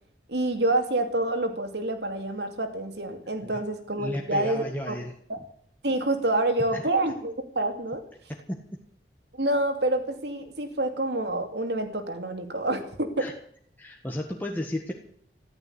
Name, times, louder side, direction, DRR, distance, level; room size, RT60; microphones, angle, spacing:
voice 1, 0.3-5.0 5.8-8.0 9.3-13.3, right 2 dB, 65° right, 7 dB, 2.7 m, -27 dB
voice 2, 4.0-5.1 6.7-6.8 8.5-8.6 13.2-13.3 13.8-14.9, left 1 dB, 10° left, 0 dB, 1.5 m, -33 dB
14.0 x 12.5 x 8.2 m, 0.62 s
head